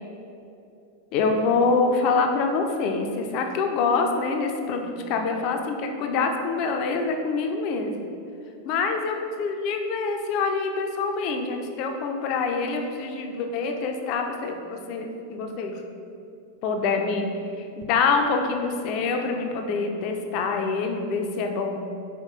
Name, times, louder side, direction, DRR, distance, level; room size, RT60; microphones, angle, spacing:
voice 1, 1.1-7.9 8.7-15.8 16.6-17.3 17.6-21.8, left 4 dB, 45° left, 4 dB, 0.4 m, -25 dB
5.1 x 4.0 x 2.3 m, 2.6 s
figure-of-eight pair, 90°, 0 cm